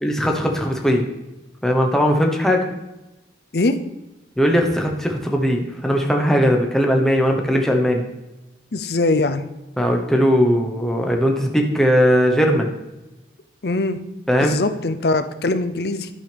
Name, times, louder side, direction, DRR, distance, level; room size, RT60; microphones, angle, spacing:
voice 1, 0.0-1.0 1.6-2.6 4.4-8.0 9.8-12.7 14.3-14.6, equal, 5° left, 1 dB, 1.0 m, -18 dB
voice 2, 8.7-9.4 13.6-14.0 14.4-16.1, left 2 dB, 60° left, 11 dB, 0.6 m, -21 dB
10.5 x 8.6 x 3.5 m, 1.0 s
head